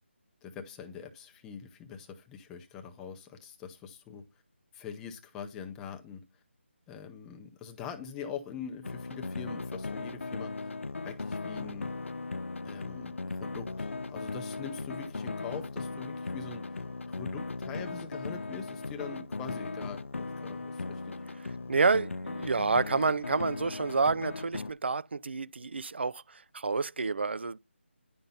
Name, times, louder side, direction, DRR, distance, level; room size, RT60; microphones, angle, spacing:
voice 1, 0.4-4.2 4.7-6.2 6.9-10.7 11.0-11.9 12.6-21.2, left 7 dB, 5° left, 0.5 m, -43 dB
sound 1, 8.8-24.7, left 3 dB, 80° left, 0.6 m, -38 dB
voice 2, 21.7-27.6, right 4 dB, 60° right, 0.5 m, -29 dB
10.5 x 5.6 x 5.4 m
figure-of-eight pair, 170°, 7 cm